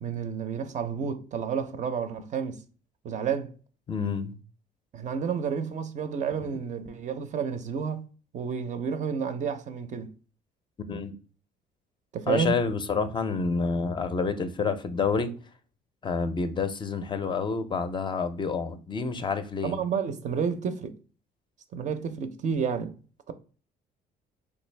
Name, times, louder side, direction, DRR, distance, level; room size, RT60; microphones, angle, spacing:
voice 1, 0.0-2.6 3.0-3.5 4.9-8.0 8.3-10.1 12.1-12.6 19.6-20.9 21.7-23.0, right 6 dB, 45° right, 0.5 m, -30 dB
voice 2, 3.9-4.3 10.9-11.2 12.3-15.3 16.0-19.8, left 4 dB, 30° left, 0.4 m, -28 dB
3.4 x 2.6 x 3.2 m
cardioid pair, 110°, 17 cm